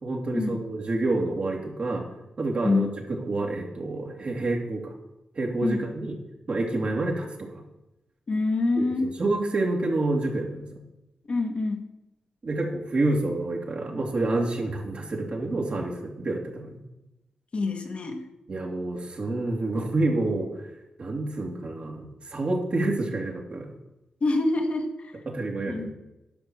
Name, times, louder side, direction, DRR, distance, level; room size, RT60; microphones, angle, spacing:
voice 1, 0.0-2.0 2.4-2.9 3.2-4.9 5.3-6.1 6.5-7.5 8.8-10.8 12.4-16.8 18.5-20.5 21.0-23.7 25.3-25.9, right 2 dB, 55° right, 0 dB, 2.7 m, -28 dB
voice 2, 2.6-3.0 5.6-5.8 8.3-9.1 11.3-11.9 17.5-18.2 24.2-25.1 25.7-25.9, left 3 dB, 55° left, 4 dB, 1.7 m, -26 dB
10.5 x 5.9 x 6.3 m, 0.93 s
supercardioid pair, 45°, 2 cm